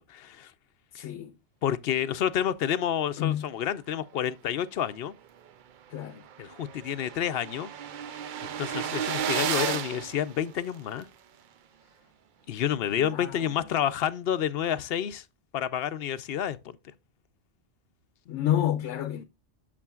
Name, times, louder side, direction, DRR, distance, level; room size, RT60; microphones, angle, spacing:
voice 1, 0.1-0.5 0.9-1.1 1.6-5.1 6.4-7.7 8.4-11.1 12.5-15.2 15.5-16.8, left 9 dB, 60° left, 0.7 m, -29 dB
voice 2, 0.9-1.3 3.2-3.5 5.9-6.2 12.9-13.7 18.3-19.2, left 11 dB, 85° left, 1.0 m, -30 dB
sound 1, 5.5-5.6 5.9-6.0 6.1-11.0, right 9 dB, 60° right, 0.5 m, -33 dB
8.5 x 6.8 x 2.3 m
omnidirectional pair, 1.2 m